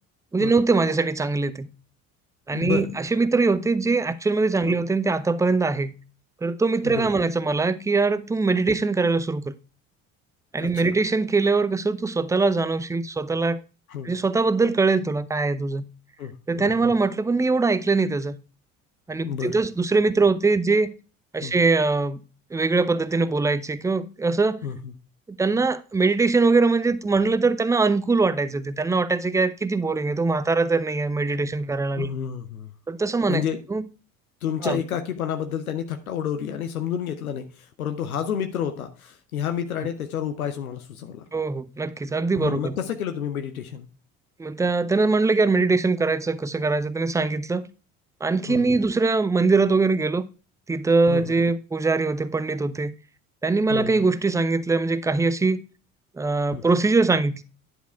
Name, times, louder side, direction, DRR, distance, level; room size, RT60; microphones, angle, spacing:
voice 1, 0.3-1.7 2.5-5.9 6.4-9.5 10.5-13.6 14.0-15.8 16.5-18.4 19.1-20.9 21.3-22.2 22.5-24.7 25.3-32.1 32.9-33.4 33.7-33.8 34.6-34.8 41.3-42.8 44.4-47.7 48.2-50.2 50.7-52.9 53.4-55.6 56.2-57.4, right 3 dB, 10° right, 0.5 m, -22 dB
voice 2, 2.5-2.9 4.6-4.8 6.8-7.1 10.6-10.9 13.9-14.1 16.2-16.9 19.2-19.5 21.4-21.5 24.6-24.9 32.0-32.7 33.3-33.6 34.4-41.3 42.3-43.9 48.5-48.8 51.1-51.2 53.7-54.1 56.5-56.6, left 8 dB, 80° left, 0.7 m, -30 dB
10.0 x 4.7 x 4.3 m
figure-of-eight pair, 55°, 42 cm